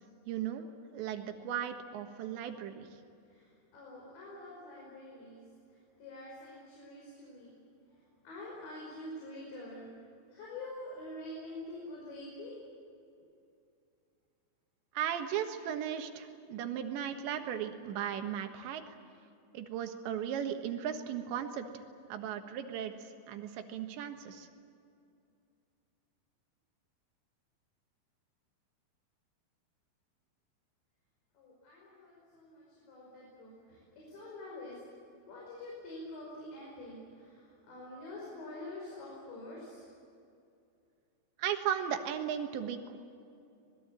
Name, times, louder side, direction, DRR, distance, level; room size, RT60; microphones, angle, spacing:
voice 1, 0.3-0.7 0.9-2.9 15.0-18.8 19.5-21.8 22.1-22.9 23.3-24.5 41.4-43.0, right 9 dB, 85° right, 6 dB, 3.7 m, -36 dB
voice 2, 3.3-5.4 6.0-7.6 7.9-9.9 10.3-12.6 31.4-34.8 35.3-39.8, left 1 dB, 80° left, -4 dB, 7.7 m, -46 dB
25.0 x 21.0 x 8.8 m, 2.5 s
omnidirectional pair, 5.0 m